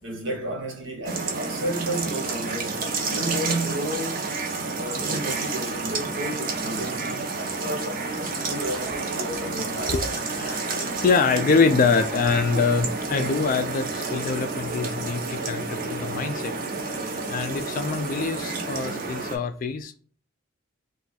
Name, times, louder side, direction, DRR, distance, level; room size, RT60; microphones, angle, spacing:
voice 1, 0.0-4.3 4.7-9.9 17.2-17.3, right 1 dB, 70° right, 1.2 m, -32 dB
sound 1, 1.0-19.4, right 3 dB, 45° right, 0.6 m, -30 dB
voice 2, 10.3-16.5 16.9-19.9, left 4 dB, 45° left, 0.4 m, -25 dB
2.6 x 2.3 x 4.0 m
head